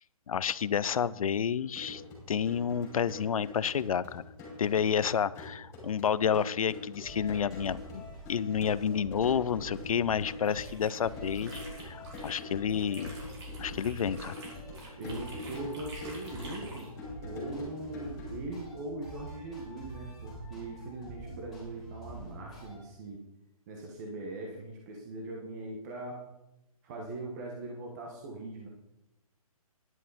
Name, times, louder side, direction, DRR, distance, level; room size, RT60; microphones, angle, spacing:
voice 1, 0.3-2.0 2.3-4.2 4.6-8.0 8.3-13.1 13.6-14.4, left 8 dB, 65° left, 19 dB, 0.5 m, -30 dB
sound 1, 1.6-18.3, left 2 dB, 15° left, 5.1 m, -45 dB
sound 2, 7.0-22.8, equal, ahead, 5.1 m, -46 dB
sound 3, 10.2-12.4 12.7-16.9, right 2 dB, 45° right, 4.7 m, -49 dB
voice 2, 15.0-16.9 17.2-23.2 23.7-26.2 26.8-28.7, right 2 dB, 30° right, 0 dB, 1.6 m, -40 dB
12.5 x 11.0 x 4.2 m, 0.90 s
hypercardioid pair, 160°, 19 cm